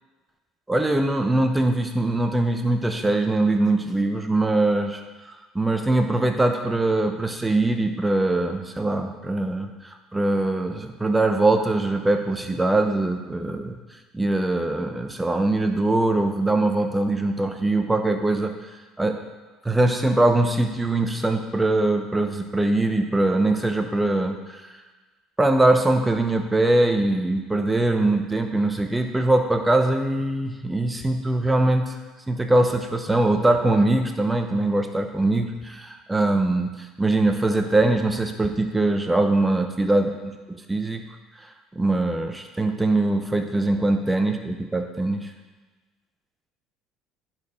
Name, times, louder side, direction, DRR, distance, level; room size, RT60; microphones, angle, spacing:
voice 1, 0.7-13.8 14.1-18.7 19.0-19.2 19.6-24.8 25.4-32.0 32.3-40.4 40.7-41.1 41.4-41.5 41.7-45.3, right 2 dB, 10° right, 5 dB, 0.9 m, -22 dB
10.5 x 4.5 x 4.3 m, 1.3 s
supercardioid pair, 90°, 0 cm